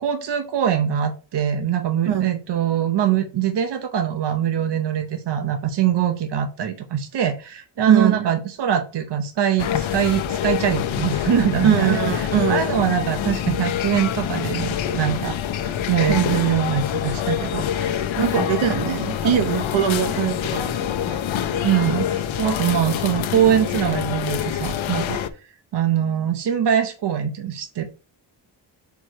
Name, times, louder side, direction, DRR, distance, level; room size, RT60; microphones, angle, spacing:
voice 1, 0.0-18.3 19.2-19.4 21.6-25.2 25.7-27.9, right 9 dB, 60° right, 7 dB, 0.8 m, -23 dB
voice 2, 7.9-8.2 11.6-12.8 16.1-16.4 18.2-21.2, right 9 dB, 85° right, 8 dB, 1.1 m, -22 dB
sound 1, 9.6-25.3, left 10 dB, 90° left, 0.8 m, -26 dB
4.6 x 4.6 x 4.5 m, 0.34 s
wide cardioid pair, 165°, 46 cm